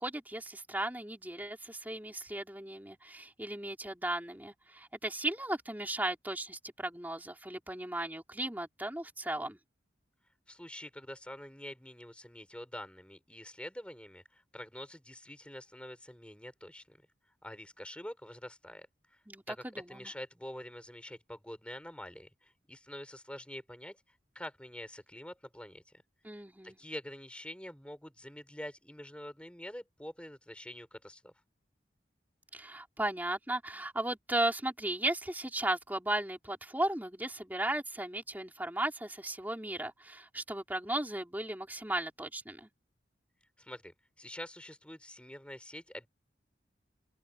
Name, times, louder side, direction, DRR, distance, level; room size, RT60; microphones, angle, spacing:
voice 1, 0.0-9.6 19.3-20.1 26.2-26.8 32.5-42.7, right 1 dB, 10° right, 3.2 m, -36 dB
voice 2, 10.5-17.0 17.4-19.2 19.5-25.8 26.6-31.3 43.6-46.1, left 1 dB, 5° left, 4.9 m, -46 dB
open air
head